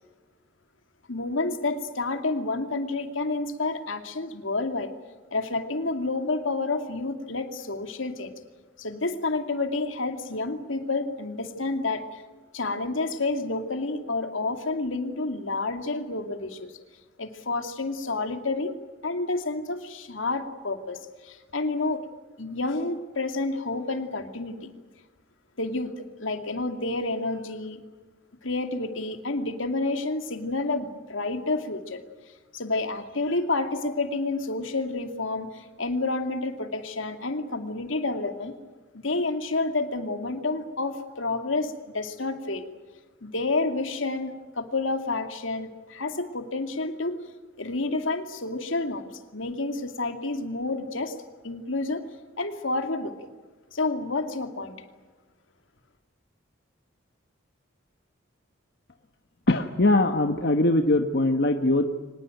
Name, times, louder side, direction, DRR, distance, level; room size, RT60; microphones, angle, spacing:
voice 1, 1.1-4.9 5.3-8.3 8.8-12.2 12.5-16.7 17.2-18.7 19.0-22.0 22.4-24.7 25.6-27.8 28.4-32.0 32.5-38.5 38.9-42.6 43.2-47.2 47.6-51.1 51.4-52.0 52.4-53.1 53.7-54.7, left 3 dB, 80° left, 7 dB, 2.5 m, -29 dB
voice 2, 59.5-62.0, left 2 dB, 55° left, 6 dB, 1.2 m, -22 dB
24.5 x 20.0 x 9.1 m, 1.3 s
head